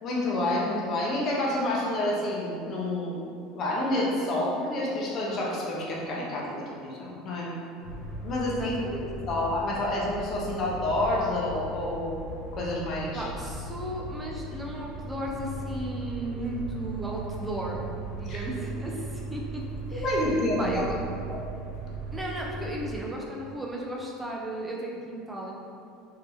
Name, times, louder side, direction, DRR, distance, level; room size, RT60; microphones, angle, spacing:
voice 1, 0.0-3.2 3.5-7.5 8.2-12.2 12.5-13.3 18.3-18.5 19.9-20.8, left 1 dB, 35° left, -3 dB, 0.7 m, -28 dB
sound 1, 7.8-23.0, right 2 dB, 65° left, 1.0 m, -38 dB
voice 2, 8.5-9.1 13.1-17.8 18.1-20.9 22.1-25.5, right 1 dB, 10° right, -2 dB, 0.5 m, -35 dB
3.4 x 2.8 x 3.4 m, 2.5 s
cardioid pair, 145°, 0 cm